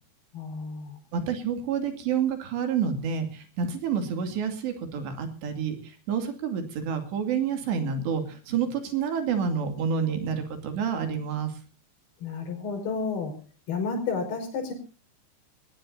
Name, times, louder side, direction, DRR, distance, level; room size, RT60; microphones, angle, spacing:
voice 1, 0.3-1.0 12.2-13.4 13.7-14.7, left 4 dB, 60° left, 4 dB, 6.9 m, -31 dB
voice 2, 1.1-11.6, right 7 dB, 70° right, 6 dB, 4.6 m, -29 dB
20.5 x 19.5 x 2.8 m, 0.36 s
omnidirectional pair, 5.3 m